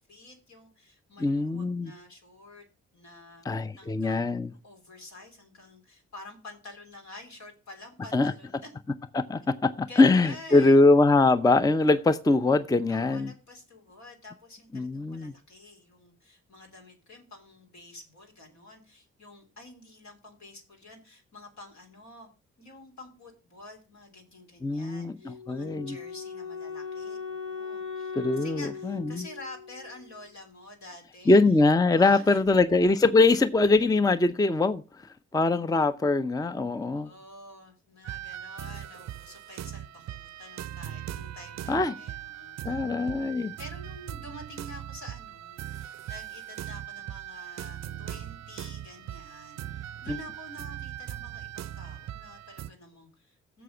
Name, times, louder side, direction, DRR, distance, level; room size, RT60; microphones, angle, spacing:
voice 1, 0.1-2.6 2.9-3.4 3.7-4.3 4.6-8.7 9.9-10.8 12.9-22.3 22.6-31.4 31.9-32.6 36.9-42.8 43.2-53.6, left 2 dB, 70° left, 3.4 m, -48 dB
voice 2, 1.2-1.9 3.4-4.5 8.1-8.3 9.1-13.3 14.7-15.3 24.6-25.9 28.1-29.2 31.3-34.8 35.3-37.1 41.7-41.9 42.6-43.5 50.1-50.2, left 3 dB, 15° left, 0.5 m, -22 dB
Wind instrument woodwind instrument, 25.2-30.3, left 5 dB, 85° left, 1.2 m, -39 dB
sound 1, 38.0-52.7, right 11 dB, 65° right, 0.5 m, -40 dB
6.9 x 6.2 x 6.9 m
supercardioid pair, 50°, 30 cm